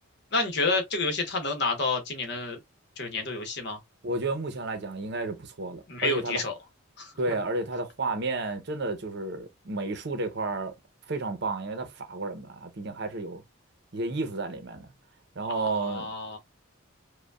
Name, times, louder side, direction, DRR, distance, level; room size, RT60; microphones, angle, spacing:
voice 1, 0.3-2.6 3.0-3.8 5.9-6.5 7.0-7.1 15.5-16.4, left 3 dB, 50° left, 1.0 m, -29 dB
voice 2, 4.0-6.4 7.2-10.8 11.1-13.4 13.9-14.9 15.4-16.1, right 2 dB, 50° right, 0.7 m, -32 dB
5.0 x 2.2 x 2.3 m
head